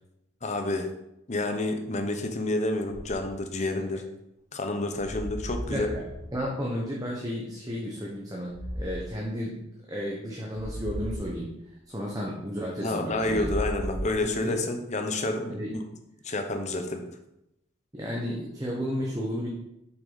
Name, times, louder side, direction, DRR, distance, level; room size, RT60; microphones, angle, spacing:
voice 1, 0.4-0.9 1.3-4.0 4.5-5.9 12.8-15.8 16.2-17.0, left 2 dB, 40° left, 5 dB, 0.9 m, -29 dB
sound 1, 2.9-3.3 4.9-6.5 8.5-9.1 10.5-11.3 13.1-14.5, equal, 60° right, 2.6 m, -36 dB
voice 2, 5.7-11.5 11.9-13.5 14.2-14.6 15.5-15.7 17.9-19.5, equal, 20° right, -3 dB, 1.1 m, -33 dB
7.6 x 6.2 x 4.1 m, 0.84 s
head